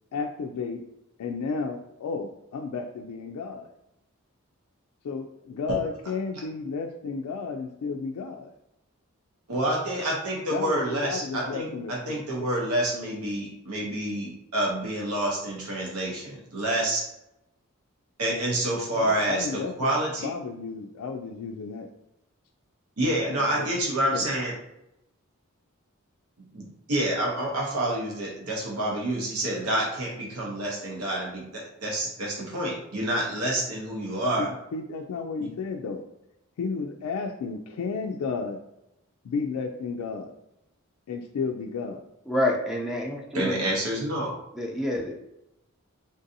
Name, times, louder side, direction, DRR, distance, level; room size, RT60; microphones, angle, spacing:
voice 1, 0.1-0.8 1.2-3.7 5.0-8.5 10.5-12.2 18.9-21.9 23.3-23.7 24.1-24.3 34.4-36.0 36.6-38.6 39.2-40.3 41.1-42.0, left 4 dB, 90° left, 2 dB, 0.3 m, -33 dB
voice 2, 9.5-17.1 18.2-20.3 23.0-24.5 26.5-34.5 35.4-35.5 43.3-44.3, right 1 dB, 85° right, -3 dB, 0.8 m, -28 dB
voice 3, 42.3-43.5 44.6-45.1, left 1 dB, ahead, 0 dB, 0.4 m, -27 dB
3.8 x 2.6 x 2.6 m, 0.86 s
head